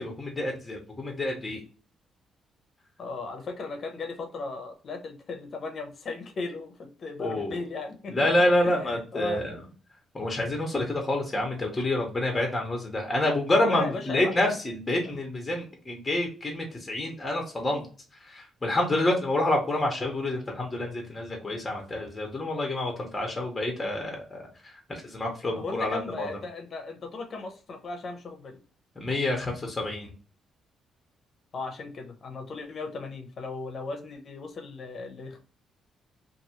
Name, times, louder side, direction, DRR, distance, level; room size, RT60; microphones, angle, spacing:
voice 1, 0.0-1.6 7.2-7.6 8.1-9.6 10.1-17.8 18.2-24.4 24.9-26.3 29.0-30.1, left 1 dB, 20° left, 1 dB, 1.0 m, -28 dB
voice 2, 3.0-8.1 8.8-9.5 11.8-11.9 13.6-14.5 25.5-28.6 31.5-35.4, left 3 dB, 50° left, 4 dB, 0.9 m, -36 dB
2.6 x 2.6 x 2.9 m, 0.38 s
cardioid pair, 90°, 0 cm